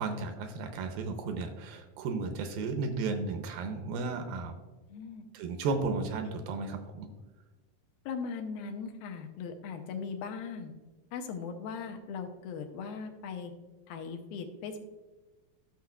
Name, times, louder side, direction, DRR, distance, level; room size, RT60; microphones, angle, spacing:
voice 1, 0.0-4.6 5.3-7.1, right 4 dB, 80° right, 5 dB, 2.3 m, -34 dB
voice 2, 4.9-5.3 8.1-10.7 11.1-13.5 13.9-14.8, left 5 dB, 80° left, 4 dB, 2.3 m, -39 dB
13.5 x 6.4 x 2.3 m, 1.2 s
omnidirectional pair, 4.5 m